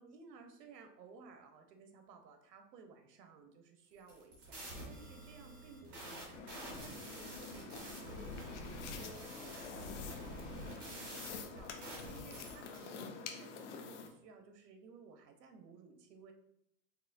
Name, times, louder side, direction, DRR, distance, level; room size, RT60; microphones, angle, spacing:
voice 1, 0.0-4.6 4.8-13.1 13.3-16.3, right 5 dB, 75° right, 6 dB, 0.9 m, -57 dB
sound 1, 4.0-12.9, equal, 15° right, 0.4 m, -48 dB
sound 2, 6.3-14.1, left 5 dB, 50° left, 0.5 m, -48 dB
4.7 x 3.5 x 2.5 m, 0.77 s
supercardioid pair, 165°, 48 cm